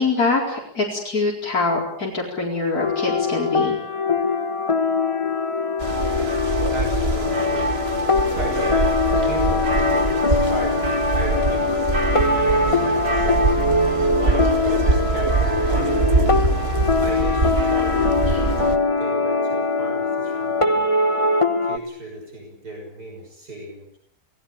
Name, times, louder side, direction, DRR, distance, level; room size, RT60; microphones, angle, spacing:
voice 1, 0.0-3.8 18.3-18.4, left 3 dB, 70° left, -3 dB, 5.1 m, -24 dB
sound 1, 2.8-21.8, left 3 dB, 25° left, 1.0 m, -22 dB
sound 2, 5.8-18.8, right 2 dB, 40° right, 2.2 m, -23 dB
voice 2, 6.7-7.8 8.3-8.9 9.2-13.3 13.6-16.2 17.0-18.0 19.0-20.9 21.1-21.3 21.6-24.0, right 1 dB, 80° right, 1 dB, 6.7 m, -35 dB
28.5 x 18.0 x 8.5 m, 0.71 s
omnidirectional pair, 1.7 m